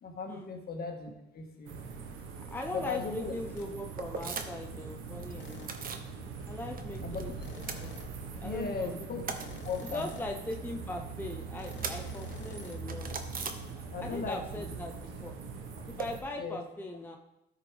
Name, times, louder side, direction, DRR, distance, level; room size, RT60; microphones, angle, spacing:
voice 1, 0.0-1.8 2.7-3.3 7.0-7.2 8.4-9.2 9.6-10.1 13.9-14.6 16.4-16.6, left 5 dB, 50° left, 2 dB, 1.6 m, -37 dB
sound 1, 1.7-16.2, right 4 dB, 90° right, 1.2 m, -42 dB
voice 2, 2.4-5.7 6.5-8.0 8.4-9.0 9.8-13.1 13.7-14.9 15.2-15.3 15.9-17.2, left 1 dB, 10° left, 2 dB, 0.7 m, -40 dB
sound 2, 3.6-3.8 5.4-5.9 7.4-8.3 9.3-10.4 11.6-12.8, left 6 dB, 65° left, 1.0 m, -50 dB
sound 3, 4.0-4.8 5.0-6.1 6.4-7.2 7.5-8.5 8.8-14.2 14.5-16.1, right 5 dB, 45° right, 0.9 m, -42 dB
13.0 x 5.2 x 3.4 m, 0.88 s
cardioid pair, 90°, 20 cm